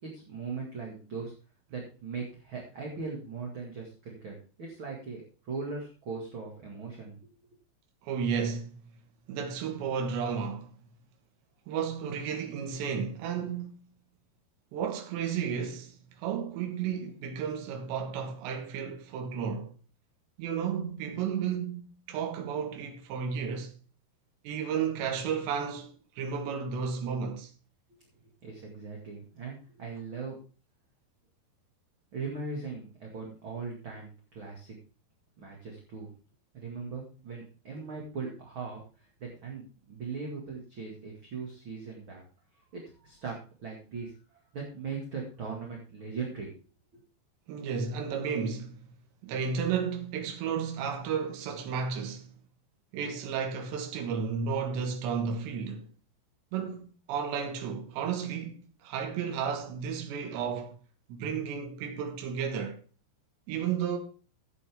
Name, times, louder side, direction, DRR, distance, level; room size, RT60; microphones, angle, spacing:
voice 1, 0.0-1.3 1.7-7.2 27.9-28.0 28.4-30.4 32.1-34.7 35.4-36.1 36.5-42.2 42.7-43.3 43.6-46.6, right 4 dB, 40° right, 1.9 m, -39 dB
voice 2, 8.0-8.8 9.3-10.7 11.7-13.9 14.7-19.7 20.4-23.7 24.5-27.5 47.5-48.9 49.2-52.3 52.9-55.9 56.5-60.8 61.1-62.8 63.5-64.0, right 6 dB, 80° right, 3.7 m, -33 dB
14.0 x 8.1 x 3.5 m
omnidirectional pair, 5.1 m